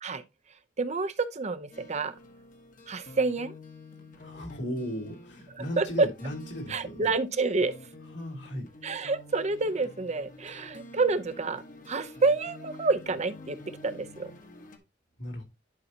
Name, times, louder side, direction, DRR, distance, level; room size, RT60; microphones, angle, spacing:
voice 1, 0.8-2.1 2.9-3.5 5.8-6.1 6.7-7.7 8.8-13.6 13.8-14.3, right 3 dB, 40° right, 0.7 m, -28 dB
sound 1, 1.7-14.8, left 1 dB, 45° left, 1.3 m, -49 dB
voice 2, 4.2-7.1 8.0-8.7 15.2-15.4, equal, 70° left, 3.1 m, -36 dB
11.0 x 5.5 x 2.8 m
head